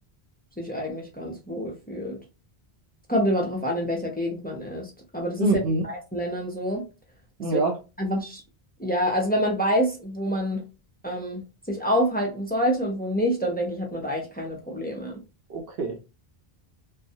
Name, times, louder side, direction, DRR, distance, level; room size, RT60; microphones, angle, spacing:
voice 1, 0.6-2.2 3.1-5.5 5.8-6.8 8.0-8.4 8.8-10.7 11.0-15.2, equal, 15° left, 0.3 m, -27 dB
voice 2, 5.4-5.8 7.4-7.8 15.5-16.1, right 2 dB, 70° right, 0.8 m, -25 dB
2.3 x 2.1 x 2.7 m
omnidirectional pair, 1.0 m